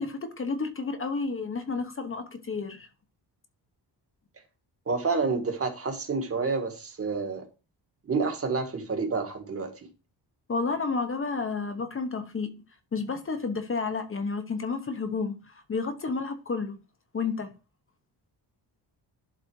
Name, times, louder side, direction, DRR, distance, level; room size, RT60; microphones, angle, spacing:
voice 1, 0.0-2.9 10.5-12.5 12.9-16.8 17.1-17.5, left 4 dB, 30° left, 1.0 m, -31 dB
voice 2, 4.9-7.5 8.0-9.9, right 4 dB, 30° right, 1.6 m, -29 dB
11.5 x 4.0 x 4.6 m
wide cardioid pair, 170°, 43 cm